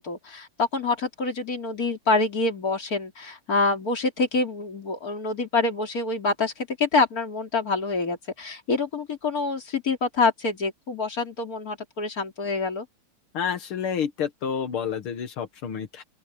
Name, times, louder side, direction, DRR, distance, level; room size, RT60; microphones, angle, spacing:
voice 1, 0.0-12.9, left 3 dB, 40° left, 3.6 m, -26 dB
voice 2, 13.3-16.0, left 7 dB, 80° left, 2.3 m, -29 dB
open air
omnidirectional pair, 2.3 m